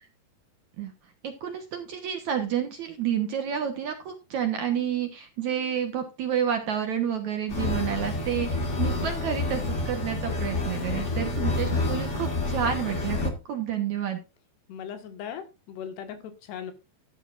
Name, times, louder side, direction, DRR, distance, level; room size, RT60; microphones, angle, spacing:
voice 1, 1.2-14.2, right 9 dB, 60° right, 6 dB, 2.1 m, -30 dB
sound 1, 7.5-13.3, left 2 dB, 45° left, 0.9 m, -28 dB
voice 2, 10.7-11.3 14.7-16.7, left 8 dB, 80° left, 8 dB, 3.8 m, -39 dB
13.0 x 12.0 x 2.6 m, 0.29 s
omnidirectional pair, 4.8 m